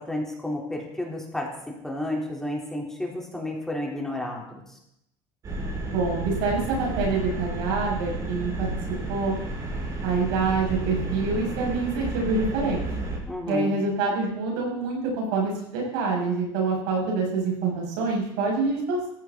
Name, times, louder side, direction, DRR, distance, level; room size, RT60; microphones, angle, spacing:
voice 1, 0.0-1.5 1.8-4.8 13.3-13.7, left 1 dB, 5° left, -2 dB, 4.1 m, -31 dB
sound 1, 5.4-13.2, right 2 dB, 35° right, 6.7 m, -31 dB
voice 2, 5.8-8.7 9.1-9.3 10.0-12.8 13.5-19.1, right 4 dB, 85° right, -1 dB, 7.2 m, -26 dB
18.0 x 15.0 x 4.2 m, 0.79 s
cardioid pair, 125°, 10 cm